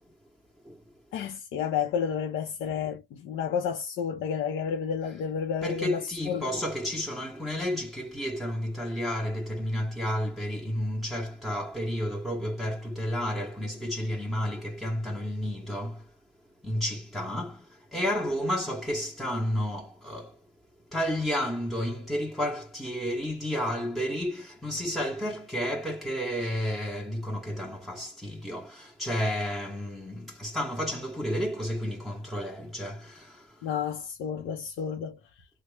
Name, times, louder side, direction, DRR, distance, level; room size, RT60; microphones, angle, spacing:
voice 1, 1.1-6.5 33.6-35.2, left 7 dB, 85° left, 0.6 m, -31 dB
voice 2, 5.6-16.1 16.6-20.4 20.9-33.7, equal, ahead, 0.8 m, -31 dB
2.9 x 2.1 x 3.2 m
cardioid pair, 90°, 20 cm